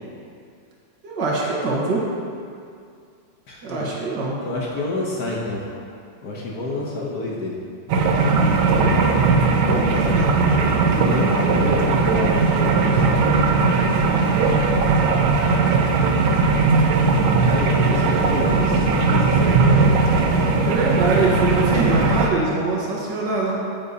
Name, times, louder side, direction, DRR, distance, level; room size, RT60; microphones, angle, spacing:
voice 1, 1.0-2.1 3.6-4.4 8.7-8.9 9.6-10.3 20.6-23.6, right 3 dB, 65° right, -4 dB, 1.8 m, -23 dB
voice 2, 3.5-3.9 4.4-5.6 6.2-7.6 10.6-13.2 13.6-14.5 17.4-20.2, left 2 dB, 60° left, -3 dB, 1.2 m, -29 dB
sound 1, 7.9-22.3, right 4 dB, 90° right, 1.5 m, -18 dB
9.0 x 7.4 x 2.8 m, 2.3 s
omnidirectional pair, 2.1 m